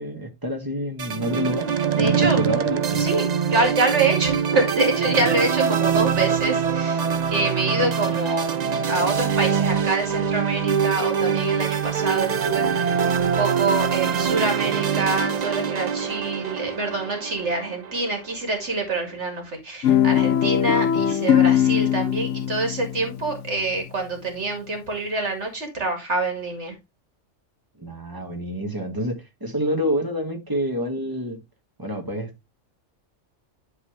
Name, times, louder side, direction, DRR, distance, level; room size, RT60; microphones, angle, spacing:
voice 1, 0.0-1.7 2.0-3.0 27.8-31.4 31.8-32.3, equal, 15° right, 1.7 m, -28 dB
sound 1, 1.0-18.4, right 7 dB, 50° right, 0.5 m, -24 dB
voice 2, 2.0-2.4 3.0-8.6 8.9-26.8, right 3 dB, 65° right, 2.4 m, -26 dB
Guitar, 19.8-24.2, left 10 dB, 75° left, 0.9 m, -21 dB
11.0 x 4.0 x 3.3 m
omnidirectional pair, 1.3 m